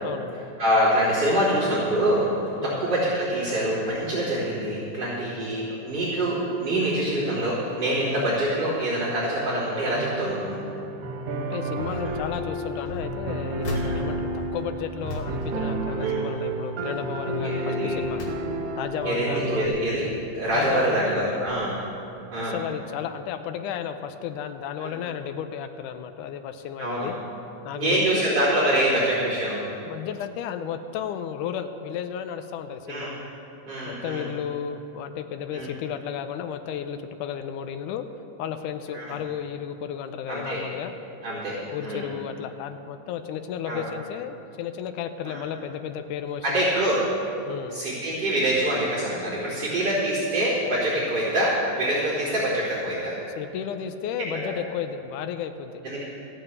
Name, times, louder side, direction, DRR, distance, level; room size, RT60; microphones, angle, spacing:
voice 1, 0.0-0.4 2.6-2.9 8.1-8.4 11.4-18.2 18.8-19.9 20.5-21.5 22.4-27.2 27.6-28.3 29.8-33.1 33.9-38.1 38.4-40.9 41.6-46.6 47.5-47.8 53.4-55.8, left 8 dB, 90° left, 8 dB, 2.2 m, -33 dB
voice 2, 0.6-2.3 2.6-10.6 13.8-14.0 16.0-16.2 17.4-18.0 19.0-20.0 20.3-21.7 22.3-22.6 24.8-25.0 26.8-27.1 27.7-29.6 32.9-33.1 33.7-34.3 35.5-35.7 38.9-39.2 40.3-40.6 41.2-41.6 41.8-42.1 43.7-43.8 45.2-45.4 46.4-47.0 47.7-53.1 54.3-54.5 55.8-56.0, right 1 dB, 35° right, -14 dB, 3.9 m, -25 dB
sound 1, 9.9-19.7, right 2 dB, 75° right, 2.4 m, -31 dB
sound 2, 11.9-12.4 12.8-16.5 16.8-17.2 17.7-18.9 19.4-20.4 21.1-21.2 21.5-21.6, equal, 55° left, 2.4 m, -38 dB
15.5 x 7.7 x 7.9 m, 2.8 s
omnidirectional pair, 3.6 m